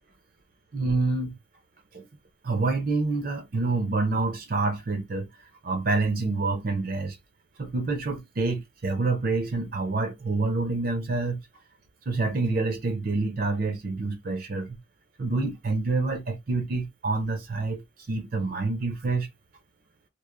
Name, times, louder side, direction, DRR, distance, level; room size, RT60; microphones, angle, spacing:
voice 1, 0.7-1.3 1.9-2.0 2.4-5.3 5.6-7.2 7.6-11.4 12.1-14.8 15.2-17.8 18.1-19.3, right 3 dB, 45° right, 0.5 m, -27 dB
3.0 x 2.0 x 2.3 m
head